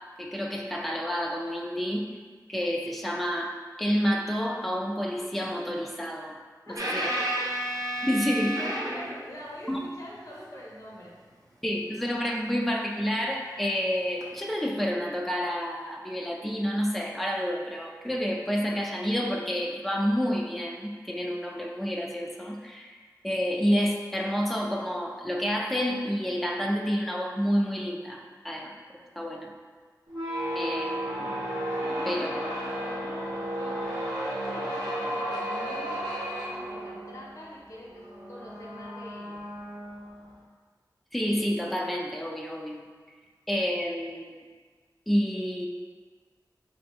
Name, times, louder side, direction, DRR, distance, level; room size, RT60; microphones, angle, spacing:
voice 1, 0.2-2.0 2.5-6.4 6.9-7.1 8.0-8.5 9.7-9.8 11.6-23.0 23.2-28.7 29.2-29.5 30.5-31.3 32.1-32.3 41.1-42.8 43.5-44.4 45.1-45.7, equal, ahead, 0 dB, 0.3 m, -29 dB
voice 2, 6.7-7.5 8.0-11.1 31.8-36.1 36.5-39.4, left 1 dB, 45° left, -6 dB, 0.6 m, -43 dB
sound 1, 6.8-9.3 12.3-12.4 14.2-14.3, right 1 dB, 50° right, 0.6 m, -31 dB
sound 2, 30.1-40.4, equal, 75° right, 1.0 m, -33 dB
2.6 x 2.6 x 4.1 m, 1.5 s
wide cardioid pair, 60°, 7 cm